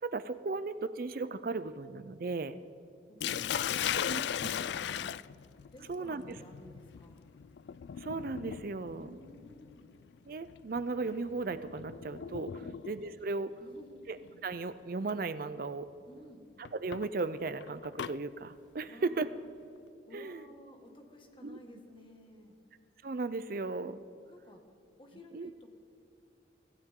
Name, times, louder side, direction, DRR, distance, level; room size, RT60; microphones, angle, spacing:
voice 1, 0.0-2.6 4.1-4.2 5.9-6.2 8.0-9.1 10.3-12.6 12.9-13.5 14.1-14.2 14.4-15.9 16.6-19.3 20.1-20.4 21.4-21.6 23.0-24.0 25.3-25.5, right 3 dB, 50° right, 13 dB, 0.5 m, -36 dB
voice 2, 3.1-5.2 5.7-7.3 8.9-9.9 12.6-12.8 13.6-14.1 16.1-16.4 18.8-19.5 20.1-22.6 24.3-24.6 25.0-25.8, left 1 dB, 25° left, 3 dB, 1.9 m, -53 dB
Sink (filling or washing), 3.2-13.1 14.3-14.6 15.1-15.2 16.6-18.2, left 9 dB, 70° left, 0.3 m, -38 dB
24.5 x 15.5 x 3.7 m, 2.6 s
head